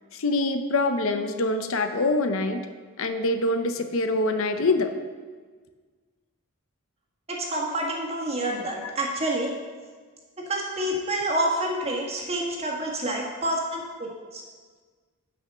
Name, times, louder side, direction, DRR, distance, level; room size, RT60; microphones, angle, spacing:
voice 1, 0.1-2.7 3.0-4.9 8.8-8.9, left 2 dB, 65° left, 7 dB, 0.7 m, -25 dB
voice 2, 7.3-9.5 10.5-14.4, right 1 dB, 25° right, -1 dB, 1.7 m, -28 dB
8.7 x 6.0 x 6.7 m, 1.5 s
head